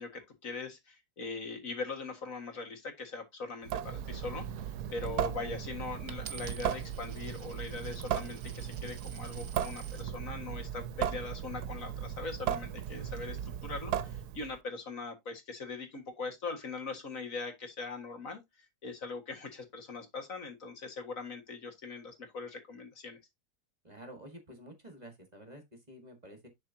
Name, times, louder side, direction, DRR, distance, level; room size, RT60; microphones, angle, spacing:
voice 1, 0.0-18.4 18.8-23.2, left 4 dB, 60° left, 2.1 m, -41 dB
Water tap faucet / Sink (filling or washing) / Drip, 3.6-14.6, right 10 dB, 85° right, 1.2 m, -37 dB
Coin (dropping), 6.1-10.1 10.8-11.2, right 7 dB, 55° right, 1.4 m, -50 dB
voice 2, 23.8-26.5, right 1 dB, 25° right, 1.8 m, -50 dB
11.0 x 4.4 x 2.7 m
omnidirectional pair, 1.6 m